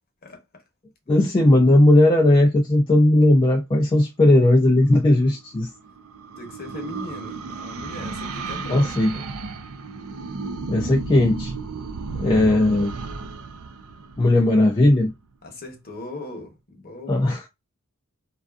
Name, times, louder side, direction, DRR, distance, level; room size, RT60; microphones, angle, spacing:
voice 1, 0.2-0.6 1.1-1.2 6.4-9.3 15.4-17.3, left 2 dB, 45° left, 0.8 m, -39 dB
voice 2, 1.1-5.7 8.7-9.1 10.7-11.5 12.2-12.9 14.2-15.1 17.1-17.5, left 1 dB, 25° left, 0.3 m, -17 dB
sound 1, 5.3-14.9, right 4 dB, 90° right, 0.4 m, -33 dB
2.5 x 2.4 x 2.2 m
head